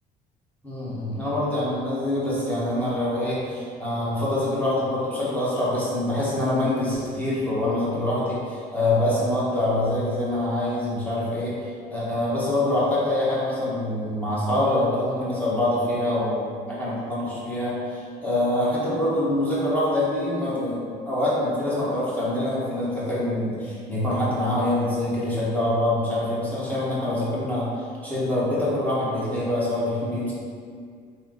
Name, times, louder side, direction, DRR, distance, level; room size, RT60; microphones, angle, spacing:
voice 1, 0.6-30.3, left 1 dB, 10° left, -9 dB, 1.3 m, -25 dB
3.2 x 3.0 x 3.8 m, 2.1 s
cardioid pair, 110°, 17 cm